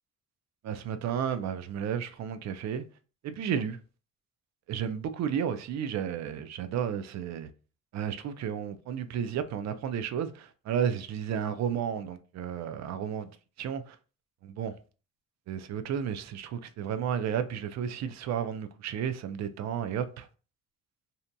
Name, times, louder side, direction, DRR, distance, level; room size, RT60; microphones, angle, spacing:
voice 1, 0.6-2.8 3.2-3.8 4.7-7.5 7.9-13.3 13.6-14.0 14.4-14.7 15.5-20.3, right 8 dB, 60° right, 0.4 m, -32 dB
2.7 x 2.5 x 2.2 m
cardioid pair, 90°, 30 cm